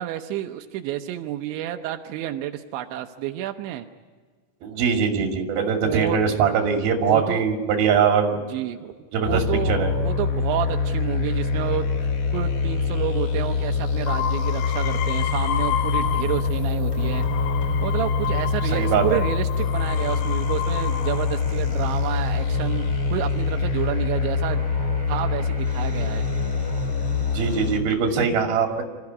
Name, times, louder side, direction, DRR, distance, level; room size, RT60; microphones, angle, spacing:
voice 1, 0.0-3.9 5.8-6.2 7.1-7.5 8.3-8.9 9.3-11.9 12.3-17.2 17.8-24.7 25.1-26.2, right 12 dB, 85° right, 5 dB, 3.2 m, -30 dB
voice 2, 4.6-8.4 9.1-9.9 18.7-19.2 27.3-28.8, right 6 dB, 60° right, 3 dB, 4.2 m, -22 dB
sound 1, 9.2-27.8, left 5 dB, 55° left, 1.7 m, -25 dB
sound 2, 14.1-16.6 17.0-21.5 22.3-22.8, left 10 dB, 85° left, 3.2 m, -31 dB
sound 3, 15.1-27.8, equal, 5° left, 2.6 m, -40 dB
27.0 x 14.5 x 9.6 m, 1.5 s
omnidirectional pair, 5.1 m